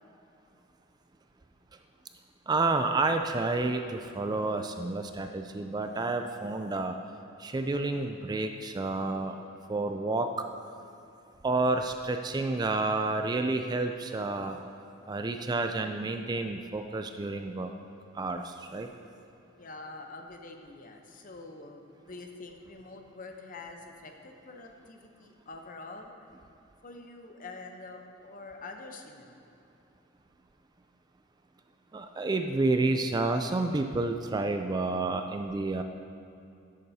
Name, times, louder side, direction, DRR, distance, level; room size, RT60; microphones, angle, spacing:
voice 1, 2.5-6.9 7.4-9.4 9.7-10.3 11.4-14.6 15.1-17.7 18.2-18.9 31.9-35.8, right 3 dB, 20° right, 6 dB, 0.3 m, -30 dB
voice 2, 19.6-26.1 26.8-29.4, left 3 dB, 45° left, 4 dB, 0.8 m, -46 dB
12.0 x 8.6 x 2.8 m, 2.6 s
head